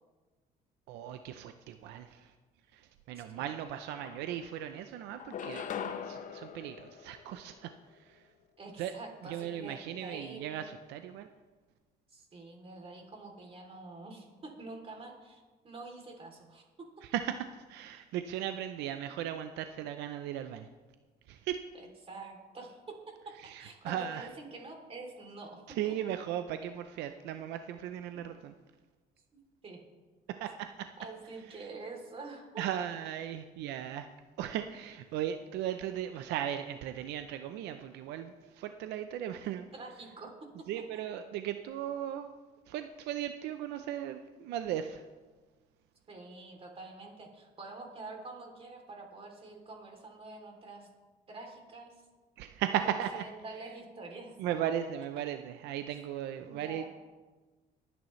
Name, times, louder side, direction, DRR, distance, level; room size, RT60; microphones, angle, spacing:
voice 1, 0.9-2.3 2.7-2.8 3.1-7.7 8.8-8.9 9.2-11.3 17.1-20.7 21.3-21.6 23.4-24.3 25.8-28.5 30.4-30.9 32.6-34.1 34.4-39.7 40.7-42.3 42.7-45.0 52.4-53.2 54.4-56.9, right 10 dB, 85° right, 8 dB, 0.6 m, -37 dB
voice 2, 3.1-3.5 8.6-10.7 12.1-16.6 18.9-19.0 21.7-25.9 29.3-29.8 31.0-32.6 39.7-40.3 40.9-41.0 46.1-50.9 51.3-52.0 52.8-54.3 55.9-56.0 56.4-56.9, right 3 dB, 35° right, 2 dB, 3.0 m, -47 dB
sound 1, 3.5-3.6 3.9-4.7 5.2-7.8, left 7 dB, 50° left, 0.8 m, -42 dB
21.5 x 9.2 x 3.2 m, 1.3 s
cardioid pair, 110°, 17 cm